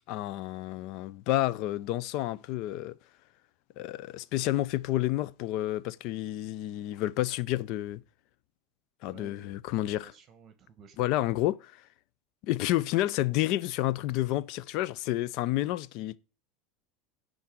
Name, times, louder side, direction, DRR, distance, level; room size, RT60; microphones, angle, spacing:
voice 1, 0.1-3.0 3.8-8.0 9.0-10.1 11.0-11.7 12.4-16.2, left 15 dB, 60° left, 0.6 m, -30 dB
voice 2, 9.0-9.5 10.0-11.1, right 6 dB, 35° right, 1.4 m, -53 dB
11.0 x 3.9 x 7.6 m
supercardioid pair, 105°, 0 cm